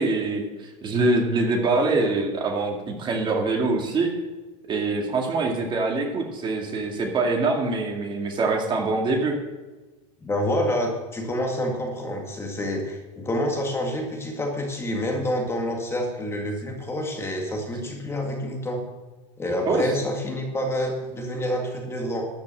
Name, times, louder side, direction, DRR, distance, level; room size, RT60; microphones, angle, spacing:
voice 1, 0.0-4.1 4.7-9.4 19.6-19.9, right 3 dB, 30° right, 1 dB, 2.2 m, -24 dB
voice 2, 10.2-18.8 19.4-22.3, equal, 15° left, 1 dB, 1.9 m, -28 dB
12.5 x 6.0 x 7.6 m, 1.2 s
supercardioid pair, 130°, 16 cm